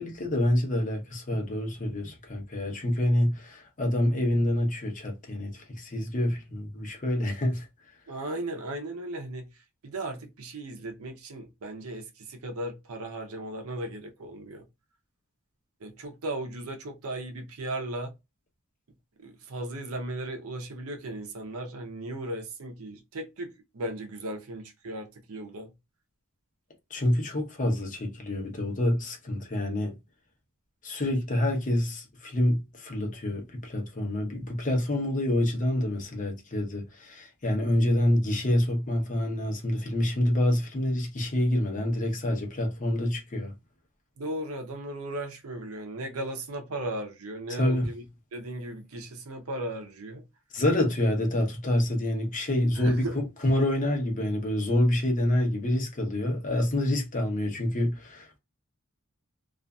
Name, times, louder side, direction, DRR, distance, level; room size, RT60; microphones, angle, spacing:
voice 1, 0.0-7.7 26.9-29.9 30.8-43.5 47.5-47.9 50.5-53.1 53.4-58.4, left 1 dB, 35° left, 0.8 m, -27 dB
voice 2, 8.1-9.5 9.8-14.6 15.8-18.1 19.2-25.7 44.2-48.0 48.3-50.2 52.8-53.2, right 1 dB, 85° right, 0.6 m, -36 dB
2.5 x 2.4 x 2.2 m
head